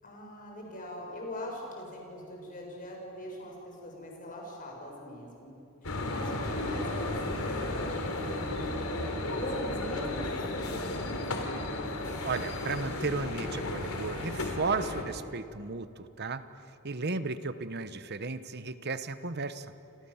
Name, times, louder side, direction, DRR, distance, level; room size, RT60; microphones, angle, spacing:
voice 1, 0.0-5.6 6.1-11.9, equal, 40° left, -1 dB, 7.2 m, -41 dB
sound 1, 5.8-15.0, left 2 dB, 85° left, 3.5 m, -34 dB
voice 2, 12.2-16.4 16.8-19.7, right 4 dB, 50° right, 12 dB, 1.1 m, -34 dB
29.5 x 27.5 x 7.3 m, 2.8 s
head